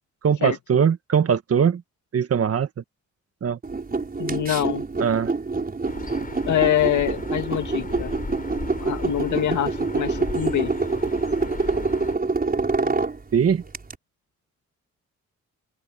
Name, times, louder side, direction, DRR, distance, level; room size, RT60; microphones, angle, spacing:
voice 1, 0.2-1.8 2.1-2.7 3.4-3.6 5.0-5.3 13.3-13.6, right 7 dB, 55° right, 1.5 m, -21 dB
sound 1, 3.6-13.9, right 3 dB, 30° right, 4.8 m, -26 dB
voice 2, 4.2-4.8 6.5-8.1 8.8-10.7, left 11 dB, 85° left, 2.1 m, -24 dB
sound 2, 5.8-12.2, left 3 dB, 30° left, 4.8 m, -36 dB
open air
cardioid pair, 90°, 29 cm